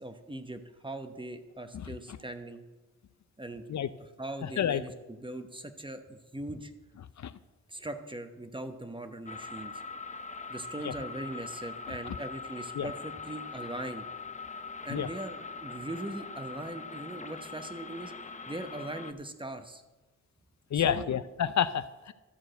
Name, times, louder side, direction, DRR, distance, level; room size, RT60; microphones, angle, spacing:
voice 1, 0.0-2.6 3.4-3.6 4.0-6.7 7.7-9.7 10.5-14.0 14.8-18.1 18.5-19.8 20.7-21.1, right 1 dB, 15° right, 7 dB, 0.9 m, -40 dB
voice 2, 1.7-2.2 3.7-3.9 4.4-4.8 7.2-7.3 10.8-10.9 11.9-12.0 12.8-12.9 14.9-15.1 20.7-22.1, left 9 dB, 70° left, 14 dB, 0.5 m, -30 dB
sound 1, 9.3-19.1, left 4 dB, 25° left, 0.6 m, -42 dB
13.0 x 4.7 x 7.8 m, 1.2 s
wide cardioid pair, 85°, 29 cm